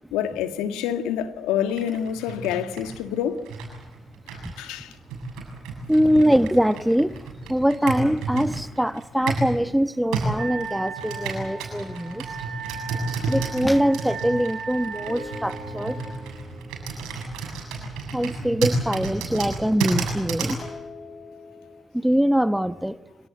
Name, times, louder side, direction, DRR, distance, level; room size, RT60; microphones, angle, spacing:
voice 1, 0.1-3.5 4.6-4.9, left 9 dB, 80° left, 1.6 m, -27 dB
Computer keyboard, 1.7-9.6 10.1-20.6, right 3 dB, 80° right, 7.3 m, -32 dB
voice 2, 5.9-12.3 13.3-16.0 18.1-20.6 21.9-23.0, equal, 5° right, 1.1 m, -23 dB
Wind instrument woodwind instrument, 10.4-16.0, right 5 dB, 60° right, 5.4 m, -37 dB
sound 1, 11.4-12.9 14.9-18.1 20.5-21.8, left 3 dB, 55° left, 6.2 m, -44 dB
26.5 x 18.5 x 8.1 m
hypercardioid pair, 40°, 0 cm